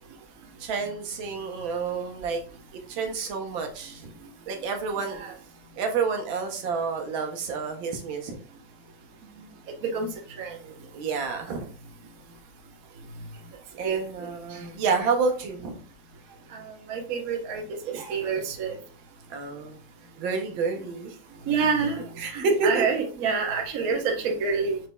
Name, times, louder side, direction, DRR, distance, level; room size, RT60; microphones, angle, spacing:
voice 1, 0.6-2.4 2.9-4.1 4.5-5.2 5.8-8.4 10.9-11.6 13.8-15.8 17.9-18.2 19.3-19.8 20.2-21.2 22.2-22.8, right 4 dB, 80° right, 4 dB, 1.6 m, -29 dB
voice 2, 5.0-5.3 9.8-10.1 10.4-10.6 13.8-14.3 16.9-18.8 21.5-22.1 22.3-24.8, right 5 dB, 55° right, 3 dB, 1.2 m, -27 dB
5.9 x 4.1 x 2.2 m, 0.40 s
omnidirectional pair, 2.1 m